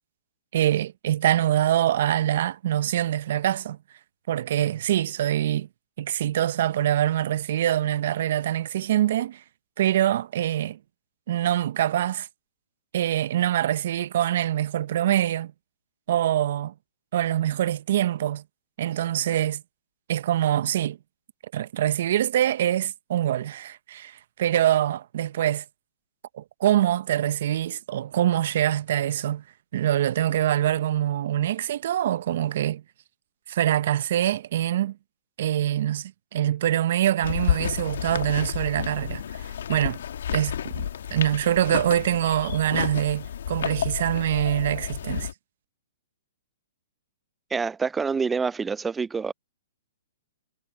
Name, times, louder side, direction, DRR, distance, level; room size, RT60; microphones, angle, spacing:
voice 1, 0.5-3.8 4.3-5.7 6.0-9.4 9.8-10.8 11.3-12.3 12.9-15.5 16.1-16.7 17.1-18.4 18.8-19.6 20.1-21.0 21.5-25.6 26.3-29.4 29.7-32.8 33.5-35.0 35.4-40.0 40.3-45.3, right 12 dB, 60° right, 0.8 m, -24 dB
sound 1, 37.2-45.3, left 9 dB, 70° left, 1.4 m, -31 dB
voice 2, 47.5-49.3, right 5 dB, 10° right, 0.3 m, -26 dB
hypercardioid pair, 130°, 0 cm